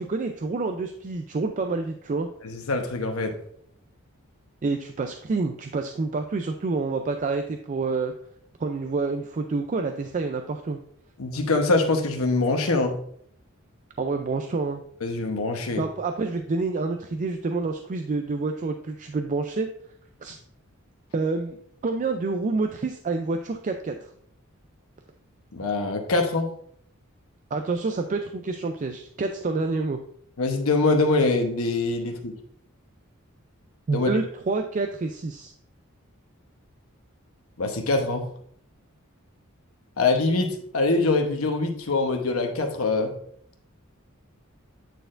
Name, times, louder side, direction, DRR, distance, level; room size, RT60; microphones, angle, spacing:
voice 1, 0.0-2.3 4.6-8.1 8.6-10.8 14.0-14.8 15.8-19.7 20.2-20.4 21.1-21.6 21.8-24.0 27.5-30.0 33.9-35.5, right 3 dB, 35° right, 6 dB, 0.4 m, -28 dB
voice 2, 2.4-3.4 11.2-12.9 15.0-15.8 25.5-26.5 30.4-32.3 33.9-34.1 37.6-38.2 40.0-43.1, left 3 dB, 85° left, 4 dB, 0.9 m, -24 dB
9.1 x 4.3 x 2.5 m, 0.66 s
head